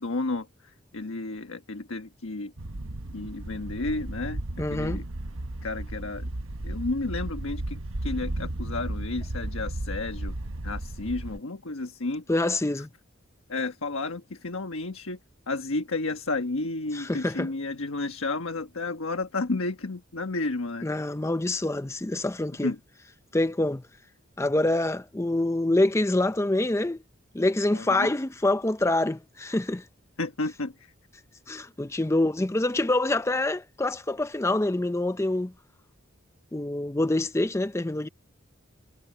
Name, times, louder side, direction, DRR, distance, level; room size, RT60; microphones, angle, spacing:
voice 1, 0.0-2.5 3.1-4.4 4.7-5.1 5.6-6.3 6.6-10.4 10.6-12.2 12.8-12.9 13.5-15.2 15.5-20.9 22.6-22.8 27.7-28.1 30.2-30.9, left 3 dB, 90° left, 1.3 m, -32 dB
sound 1, 2.6-11.4, right 1 dB, 85° right, 1.2 m, -34 dB
voice 2, 4.6-5.0 12.3-12.9 16.9-17.5 20.8-22.7 23.3-23.8 24.4-27.0 27.3-29.8 31.5-35.5 36.5-38.1, left 2 dB, 15° left, 0.5 m, -26 dB
head